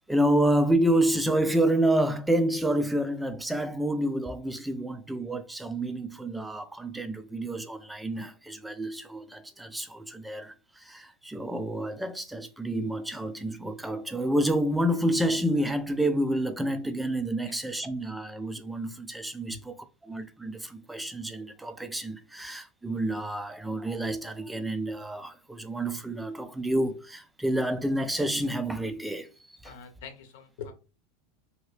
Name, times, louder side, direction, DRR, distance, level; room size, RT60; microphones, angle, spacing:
voice 1, 0.1-29.7, right 1 dB, 5° right, 0.4 m, -29 dB
voice 2, 29.6-30.7, left 7 dB, 75° left, 0.8 m, -43 dB
2.8 x 2.7 x 3.2 m
supercardioid pair, 120°, 0 cm